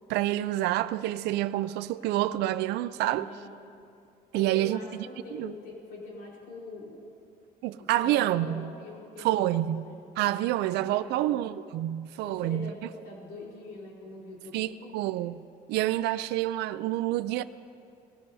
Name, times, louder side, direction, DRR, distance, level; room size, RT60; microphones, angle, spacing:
voice 1, 0.1-3.3 4.3-4.8 5.3-5.5 7.6-8.7 9.2-9.8 10.2-12.7 14.5-15.4 15.7-17.4, right 14 dB, 80° right, 0.4 m, -28 dB
voice 2, 3.0-3.5 4.3-7.0 7.8-10.0 10.5-11.4 12.2-15.0, left 2 dB, 85° left, 4.2 m, -44 dB
21.5 x 17.0 x 2.7 m
cardioid pair, 110°, 17 cm